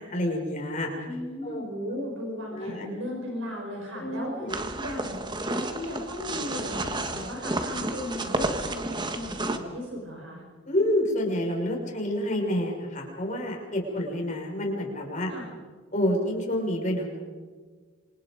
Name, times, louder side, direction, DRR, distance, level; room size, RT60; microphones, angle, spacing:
voice 1, 0.0-0.9 1.4-1.6 2.5-2.9 3.9-4.5 10.7-15.3 15.9-17.1, left 1 dB, 40° left, 1 dB, 5.9 m, -28 dB
voice 2, 1.0-4.5 4.7-5.2 5.5-10.4 13.9-14.0 15.3-15.5, left 1 dB, 75° right, 0 dB, 5.4 m, -36 dB
sound 1, 4.5-9.6, right 2 dB, 20° right, 1.6 m, -31 dB
27.5 x 27.0 x 5.2 m, 1.5 s
head